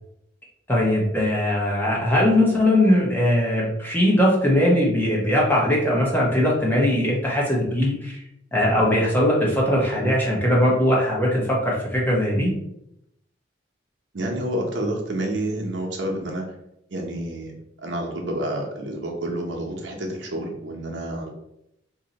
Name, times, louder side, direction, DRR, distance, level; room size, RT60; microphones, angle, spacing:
voice 1, 0.7-8.2 8.5-12.5, left 1 dB, 10° left, -4 dB, 0.9 m, -20 dB
voice 2, 14.1-16.4 16.9-17.5 17.8-21.3, right 1 dB, 85° right, 0 dB, 0.9 m, -29 dB
2.8 x 2.7 x 4.0 m, 0.81 s
head